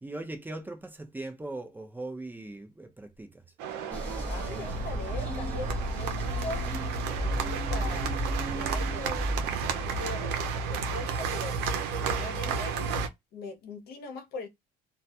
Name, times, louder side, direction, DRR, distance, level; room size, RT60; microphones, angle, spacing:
voice 1, 0.0-3.5 7.6-8.1, right 2 dB, 10° right, 0.6 m, -40 dB
sound 1, 3.6-13.1, right 5 dB, 90° right, 0.5 m, -32 dB
sound 2, 3.9-9.5, equal, 10° left, 1.1 m, -34 dB
voice 2, 4.3-6.7 7.1-8.2 8.5-9.3 9.6-11.6 12.1-12.8 13.3-14.5, left 3 dB, 70° left, 0.7 m, -40 dB
2.2 x 2.2 x 2.7 m
cardioid pair, 110°, 17 cm